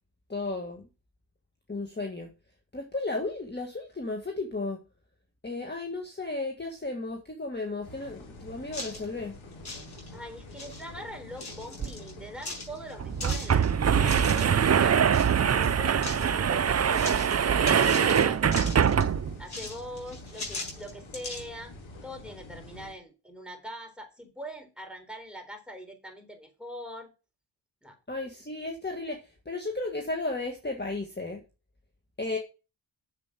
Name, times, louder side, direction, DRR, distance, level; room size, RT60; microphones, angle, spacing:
voice 1, 0.3-0.8 1.7-2.3 2.7-4.8 5.4-9.4 28.1-29.2 29.4-31.4 32.2-32.4, left 2 dB, 20° left, 3 dB, 1.7 m, -34 dB
sound 1, 7.8-22.9, left 1 dB, 80° left, 2.6 m, -47 dB
sound 2, 8.7-9.1 9.5-10.2 10.5-10.9 11.4-12.1 12.4-14.5 15.1-15.4 15.6-16.3 16.9-17.3 17.7-19.1 19.5-21.4, left 2 dB, 55° left, 6.0 m, -39 dB
voice 2, 10.1-15.0 15.5-17.3 17.7-18.5 19.4-21.7 22.0-27.1 27.8-28.0, equal, ahead, 3 dB, 4.0 m, -42 dB
sound 3, 11.8-11.9 12.2-12.3 13.0-19.4, right 7 dB, 35° right, 0.5 m, -23 dB
7.6 x 7.5 x 7.4 m, 0.31 s
cardioid pair, 75°, 47 cm